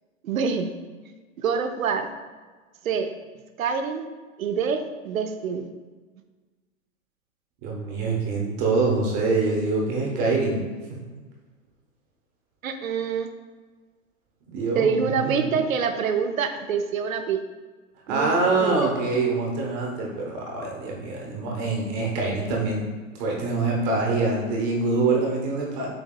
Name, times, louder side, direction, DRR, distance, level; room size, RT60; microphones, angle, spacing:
voice 1, 0.2-0.7 1.4-2.1 2.8-3.1 3.6-4.0 4.4-5.7 12.6-13.3 14.7-17.4 18.1-18.9, right 6 dB, 80° right, 7 dB, 0.6 m, -26 dB
voice 2, 7.6-10.6 10.9-11.0 14.5-15.5 18.1-22.9 23.2-25.9, right 3 dB, 30° right, -1 dB, 0.9 m, -25 dB
7.6 x 2.7 x 2.3 m, 1.4 s
hypercardioid pair, 120°, 41 cm